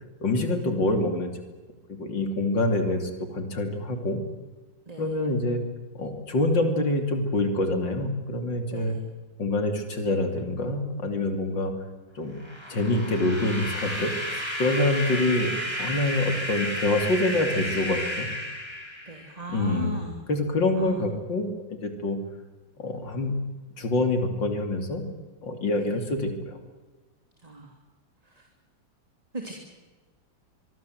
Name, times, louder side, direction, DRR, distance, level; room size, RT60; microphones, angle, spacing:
voice 1, 0.2-1.3 1.9-4.2 5.0-5.6 6.0-9.0 9.4-11.7 12.2-12.4 12.7-18.3 19.5-20.0 20.3-22.2 22.8-23.4 23.8-25.0 25.4-26.6, left 2 dB, 70° left, 6 dB, 3.7 m, -26 dB
sound 1, 12.4-19.4, equal, 15° left, 4.4 m, -32 dB
voice 2, 19.1-20.1 20.7-21.0 25.7-26.0 27.4-27.8 28.2-28.5 29.3-29.5, right 1 dB, 20° right, 2 dB, 3.0 m, -38 dB
25.0 x 23.0 x 7.9 m, 1.3 s
omnidirectional pair, 2.1 m